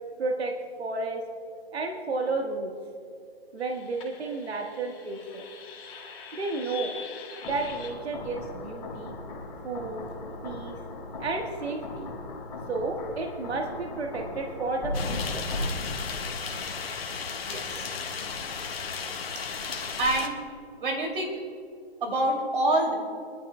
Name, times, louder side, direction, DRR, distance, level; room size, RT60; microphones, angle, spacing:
voice 1, 0.2-1.2 1.7-2.7 3.5-5.4 6.3-6.9 7.4-9.2 9.6-10.1 10.4-10.7 11.2-12.1 12.7-15.4, right 3 dB, 75° right, 2 dB, 1.4 m, -32 dB
sound 1, 3.6-15.7, left 2 dB, 30° left, 2.2 m, -39 dB
sound 2, 14.9-20.3, left 5 dB, 65° left, 1.5 m, -34 dB
voice 2, 17.5-17.9 20.0-20.4 20.8-21.4 22.0-22.9, right 1 dB, 55° right, 2 dB, 2.6 m, -26 dB
29.5 x 11.5 x 2.2 m, 2.4 s
hypercardioid pair, 160°, 32 cm